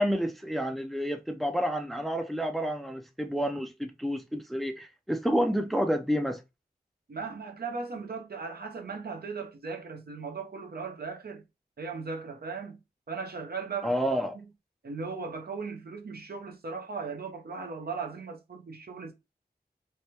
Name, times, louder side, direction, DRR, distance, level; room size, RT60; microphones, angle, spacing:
voice 1, 0.0-6.4 13.8-14.3, equal, ahead, 0.5 m, -29 dB
voice 2, 7.1-11.4 11.8-12.8 13.1-14.4 14.8-19.1, right 4 dB, 70° right, 0.7 m, -37 dB
3.3 x 2.2 x 2.8 m
wide cardioid pair, 50°, 17 cm